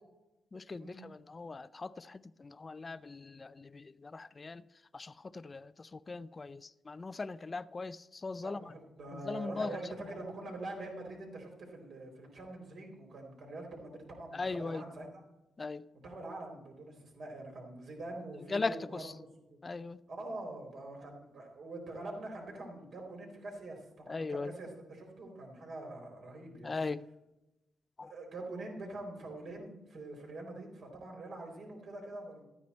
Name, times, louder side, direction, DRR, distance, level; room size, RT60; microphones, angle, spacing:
voice 1, 0.5-4.6 4.9-6.6 6.9-8.6 9.3-9.7 14.3-14.8 15.6-15.8 18.5-18.7 19.6-20.0 24.1-24.5 26.6-27.0 28.0-28.1, left 3 dB, 30° left, 0.4 m, -39 dB
voice 2, 8.4-15.2 15.9-19.6 20.1-26.7 28.0-32.4, right 2 dB, 60° right, 4.1 m, -45 dB
13.0 x 9.6 x 4.3 m
cardioid pair, 95°, 0 cm